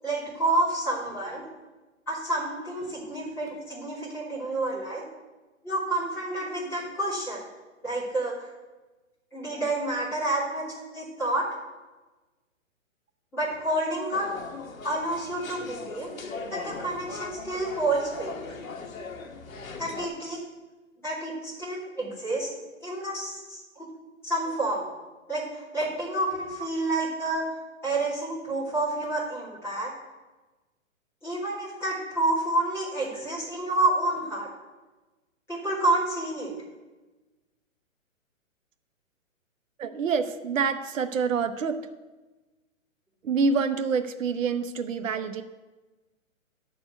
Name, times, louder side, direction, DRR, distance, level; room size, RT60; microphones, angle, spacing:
voice 1, 0.0-1.4 2.1-5.0 5.6-7.4 7.8-8.5 9.3-10.6 10.9-11.4 13.3-14.3 14.8-18.5 19.7-20.4 21.0-22.5 22.8-23.8 24.2-24.9 25.3-27.4 27.8-29.9 31.2-34.5 35.5-36.5, right 2 dB, 5° left, -10 dB, 3.1 m, -29 dB
sound 1, 14.1-20.1, left 4 dB, 80° left, 1.4 m, -39 dB
voice 2, 39.8-41.8 43.2-45.4, right 5 dB, 70° right, 9 dB, 0.9 m, -26 dB
11.5 x 4.3 x 8.0 m, 1.2 s
hypercardioid pair, 165°, 40 cm